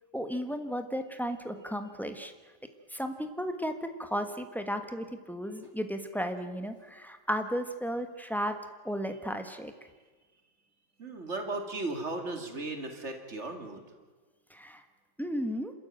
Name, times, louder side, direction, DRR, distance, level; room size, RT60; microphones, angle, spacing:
voice 1, 0.1-2.3 2.9-8.6 8.8-9.7 14.5-14.8 15.2-15.7, equal, ahead, 7 dB, 1.0 m, -34 dB
voice 2, 11.0-13.8, right 2 dB, 35° right, 5 dB, 2.5 m, -36 dB
27.5 x 13.5 x 9.1 m, 1.4 s
omnidirectional pair, 2.1 m